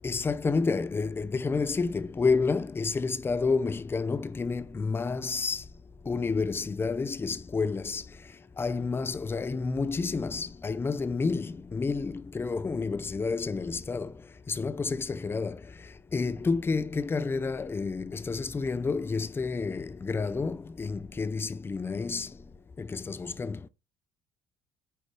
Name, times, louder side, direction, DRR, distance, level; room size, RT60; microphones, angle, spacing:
voice 1, 0.0-5.6 6.0-8.0 8.6-22.4 22.8-23.7, left 4 dB, 15° left, 0.5 m, -30 dB
10.0 x 5.0 x 3.0 m
figure-of-eight pair, 55°, 13 cm